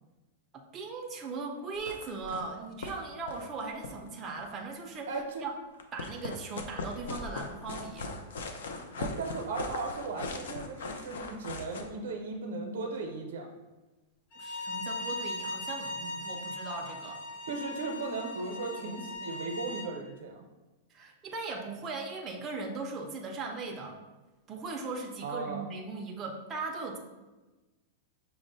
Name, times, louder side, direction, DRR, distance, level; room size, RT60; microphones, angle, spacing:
voice 1, 0.5-5.1 5.4-5.5 5.9-8.1 14.4-17.2 20.9-24.0 24.5-27.0, right 3 dB, 15° right, 0 dB, 0.4 m, -38 dB
sound 1, 1.8-2.5 2.8-2.9 3.2-4.6 5.7-11.8, left 3 dB, 75° left, 0.5 m, -39 dB
voice 2, 5.1-5.4 9.0-13.5 17.5-20.5 25.2-25.7, right 3 dB, 85° right, 2 dB, 0.6 m, -36 dB
Bowed string instrument, 14.3-19.9, left 2 dB, 50° left, 1.4 m, -39 dB
5.9 x 2.1 x 3.9 m, 1.1 s
supercardioid pair, 180°, 0 cm